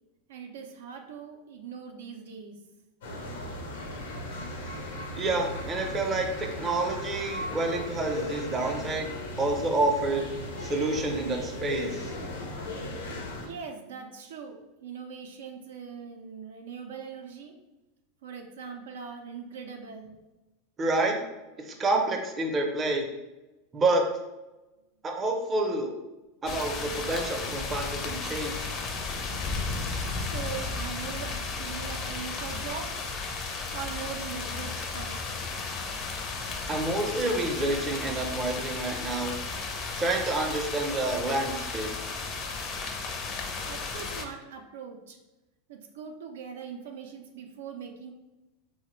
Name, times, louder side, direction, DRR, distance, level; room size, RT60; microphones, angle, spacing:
voice 1, 0.3-2.8 13.4-17.6 18.2-20.2 30.2-32.9 33.7-35.5 43.7-45.2 45.7-48.1, right 6 dB, 85° right, 3 dB, 0.4 m, -41 dB
sound 1, 3.0-13.5, left 1 dB, 85° left, 0.6 m, -37 dB
voice 2, 5.2-9.1 9.4-10.3 10.6-12.0 20.8-21.2 21.6-23.1 23.7-24.0 25.0-25.9 26.4-28.7 36.7-39.3 40.0-41.9, right 2 dB, 25° right, 2 dB, 0.5 m, -28 dB
sound 2, 26.5-44.3, left 4 dB, 35° left, 0.4 m, -34 dB
3.1 x 2.0 x 3.0 m, 1.0 s
supercardioid pair, 120°, 0 cm